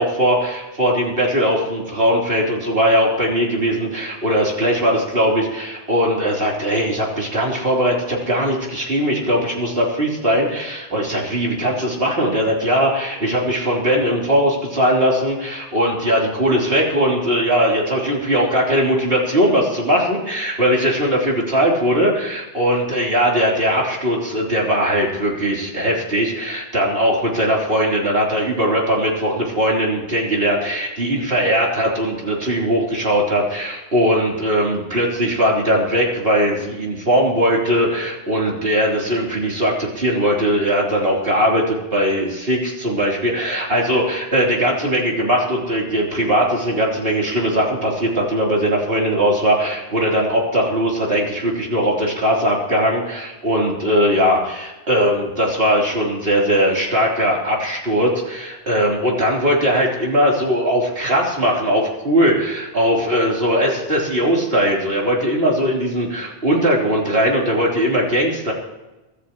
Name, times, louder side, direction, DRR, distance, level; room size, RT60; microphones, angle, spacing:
voice 1, 0.0-68.5, equal, 55° right, -3 dB, 3.9 m, -19 dB
24.0 x 13.0 x 3.1 m, 1.1 s
omnidirectional pair, 1.2 m